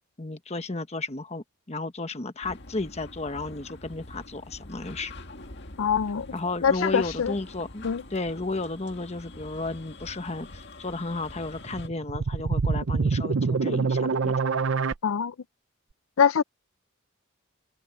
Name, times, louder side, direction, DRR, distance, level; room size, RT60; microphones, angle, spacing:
voice 1, 0.2-5.1 6.3-14.3, left 2 dB, 30° left, 1.1 m, -33 dB
sound 1, 2.4-11.9, left 2 dB, 55° left, 2.1 m, -45 dB
voice 2, 5.8-6.3 6.6-7.4 7.8-8.0 15.0-15.3 16.2-16.4, left 7 dB, 80° left, 0.5 m, -23 dB
sound 2, 11.7-14.9, right 4 dB, 65° right, 0.6 m, -25 dB
head